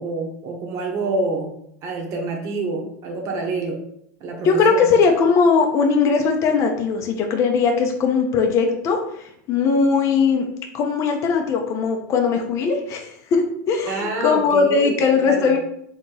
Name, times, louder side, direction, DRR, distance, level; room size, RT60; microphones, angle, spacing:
voice 1, 0.0-1.5 1.8-3.8 4.2-4.9 13.9-15.5, right 2 dB, 40° right, 1 dB, 0.9 m, -27 dB
voice 2, 4.4-10.5 10.7-15.6, left 5 dB, 35° left, 3 dB, 0.6 m, -19 dB
4.0 x 2.9 x 3.8 m, 0.73 s
supercardioid pair, 135°, 8 cm